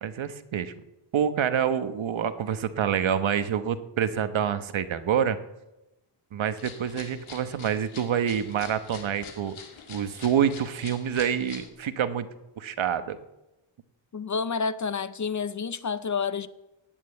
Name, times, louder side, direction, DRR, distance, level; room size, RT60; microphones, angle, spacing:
voice 1, 0.0-0.7 1.1-5.4 6.3-9.6 9.9-12.3 12.6-13.2, right 8 dB, 75° right, 1.2 m, -27 dB
sound 1, 6.6-11.7, left 6 dB, 85° left, 2.1 m, -45 dB
voice 2, 14.1-16.5, left 5 dB, 40° left, 0.6 m, -29 dB
18.0 x 9.3 x 7.8 m
wide cardioid pair, 160°, 47 cm